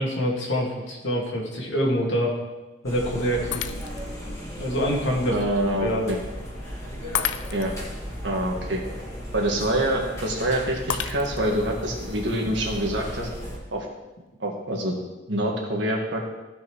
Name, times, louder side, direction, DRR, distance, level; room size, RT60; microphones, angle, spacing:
voice 1, 0.0-2.3 2.8-3.6 4.6-5.4 5.8-6.1, equal, 85° left, -2 dB, 2.2 m, -25 dB
sound 1, 2.8-13.6, equal, 15° left, 2.0 m, -36 dB
Shatter, 3.5-4.2 4.8-4.9 7.1-7.9 10.9-11.6, left 9 dB, 65° left, 0.4 m, -31 dB
voice 2, 5.3-6.2 7.5-7.7 8.2-8.8 9.3-13.3 13.7-13.9 14.4-15.0 15.3-16.2, right 1 dB, 70° right, 0 dB, 1.8 m, -26 dB
15.0 x 5.7 x 3.2 m, 1.1 s
head